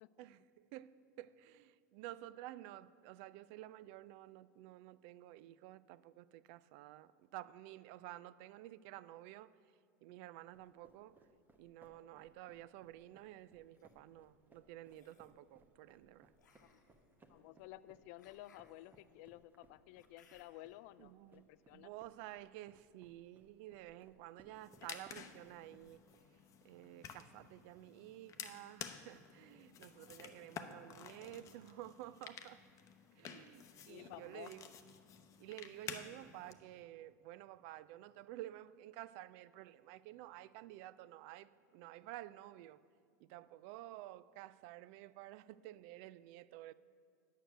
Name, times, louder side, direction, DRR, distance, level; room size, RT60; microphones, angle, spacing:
voice 1, 0.2-9.6 10.0-11.2 11.6-16.3 21.0-26.0 26.6-32.6 33.2-34.7 35.4-42.8 43.2-46.7, right 15 dB, 55° right, 0.3 m, -52 dB
sound 1, 10.5-26.2, right 2 dB, 20° right, 1.1 m, -68 dB
sound 2, 13.5-13.9 14.8-15.4 16.4-20.8, left 5 dB, 85° left, 1.0 m, -71 dB
voice 2, 17.3-21.9 33.9-34.5, left 16 dB, 55° left, 0.4 m, -54 dB
sound 3, 24.5-36.5, left 8 dB, 35° left, 0.8 m, -52 dB
9.1 x 6.4 x 7.9 m
hypercardioid pair, 90°, 9 cm